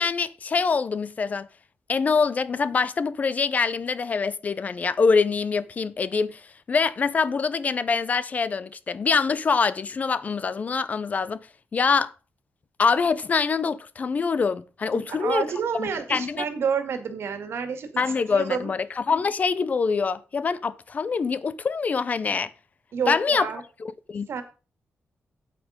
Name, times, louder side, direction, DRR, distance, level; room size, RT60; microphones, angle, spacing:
voice 1, 0.0-1.5 1.9-6.4 6.7-11.4 11.7-12.1 12.8-15.4 15.8-16.4 18.0-22.5 23.1-23.5 23.8-24.3, left 5 dB, 35° left, 0.6 m, -24 dB
voice 2, 14.9-18.7 22.9-23.6 24.3-24.4, right 6 dB, 75° right, 2.1 m, -29 dB
8.7 x 8.6 x 5.1 m
wide cardioid pair, 160°, 4 cm